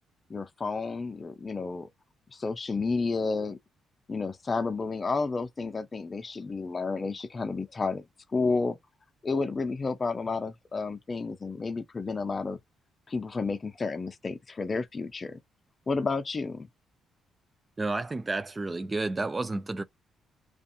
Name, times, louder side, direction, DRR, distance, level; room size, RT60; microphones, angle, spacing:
voice 1, 0.3-1.9 2.3-3.6 4.1-8.0 8.3-8.8 9.2-12.6 13.1-15.4 15.9-16.7, left 4 dB, 30° left, 0.5 m, -31 dB
voice 2, 17.8-19.8, right 2 dB, 25° right, 0.3 m, -31 dB
2.5 x 2.4 x 2.6 m
cardioid pair, 90°, 0 cm